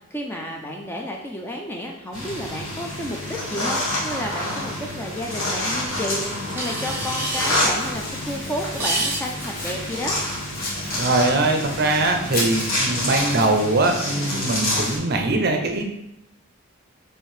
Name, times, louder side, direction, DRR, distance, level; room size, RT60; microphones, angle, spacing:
voice 1, 0.1-10.2, equal, 10° left, 0 dB, 0.3 m, -31 dB
sound 1, 2.1-15.0, left 1 dB, 65° left, 1.3 m, -28 dB
sound 2, 6.6-11.5, right 2 dB, 10° right, 0.7 m, -31 dB
Domestic sounds home sounds, 7.2-13.6, left 1 dB, 45° left, 0.9 m, -36 dB
voice 2, 11.0-15.9, right 2 dB, 45° right, 4 dB, 0.5 m, -21 dB
4.5 x 3.2 x 3.2 m, 0.85 s
head